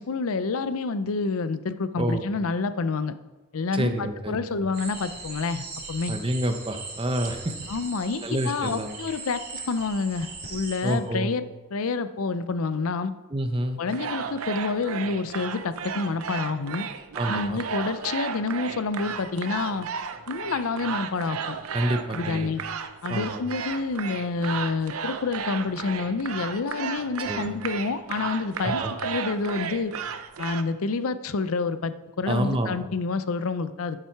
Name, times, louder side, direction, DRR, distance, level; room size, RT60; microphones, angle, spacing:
voice 1, 0.0-3.1 3.5-6.1 7.7-11.4 11.7-13.1 13.8-16.9 17.3-19.9 20.3-21.6 22.1-22.6 23.0-29.9 30.4-34.0, left 4 dB, 75° left, 12 dB, 0.5 m, -28 dB
voice 2, 3.7-4.6 6.1-7.5 8.2-9.0 10.8-11.3 13.3-13.8 17.1-17.6 21.7-22.5 23.1-23.4 27.2-27.5 28.6-28.9 32.3-32.8, right 1 dB, 25° right, 6 dB, 0.8 m, -28 dB
sound 1, 4.7-10.9, right 4 dB, 45° right, 2.6 m, -39 dB
sound 2, 13.9-30.6, right 6 dB, 75° right, 0.6 m, -34 dB
11.5 x 7.4 x 4.6 m, 1.2 s
head